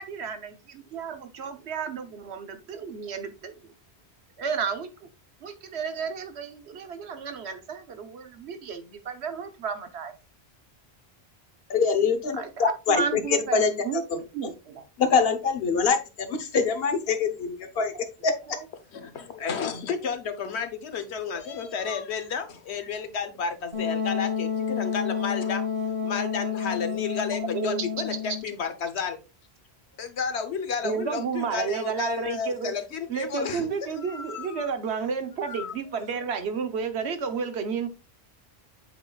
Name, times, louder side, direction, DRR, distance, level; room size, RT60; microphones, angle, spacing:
voice 1, 0.0-3.5 4.4-5.1 5.4-10.1 12.3-14.8 17.8-18.0 18.5-18.7 27.5-27.9 30.8-32.7 33.1-37.9, right 6 dB, 90° right, 1.1 m, -32 dB
voice 2, 11.7-13.7 15.0-17.9 18.2-18.3, left 5 dB, 65° left, 1.1 m, -24 dB
voice 3, 18.9-25.6 26.0-29.2 30.0-33.7 34.0-34.7 35.4-35.7 36.0-36.2, left 6 dB, 85° left, 1.2 m, -32 dB
Wind instrument woodwind instrument, 23.7-28.5, left 7 dB, 35° right, 1.3 m, -30 dB
7.7 x 5.3 x 2.3 m
omnidirectional pair, 1.1 m